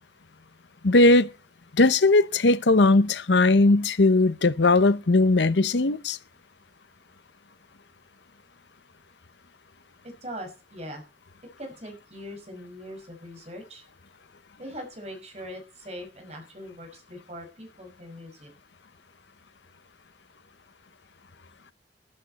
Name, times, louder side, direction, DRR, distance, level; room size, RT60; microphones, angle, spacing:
voice 1, 0.8-1.3 1.8-6.2, left 2 dB, 90° left, 0.8 m, -19 dB
voice 2, 10.0-11.1 11.6-13.8 14.6-18.5, equal, 40° right, 5.3 m, -41 dB
13.5 x 13.0 x 4.2 m
head